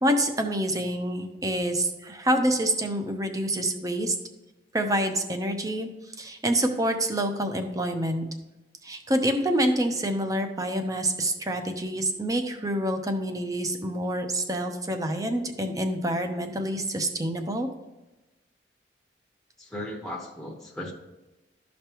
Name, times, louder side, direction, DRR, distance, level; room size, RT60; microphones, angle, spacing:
voice 1, 0.0-4.2 4.7-5.9 6.2-8.2 8.8-17.7, right 1 dB, 20° right, 5 dB, 0.8 m, -27 dB
voice 2, 19.6-20.9, left 1 dB, 5° left, -1 dB, 1.0 m, -36 dB
13.0 x 5.3 x 3.0 m, 1.0 s
head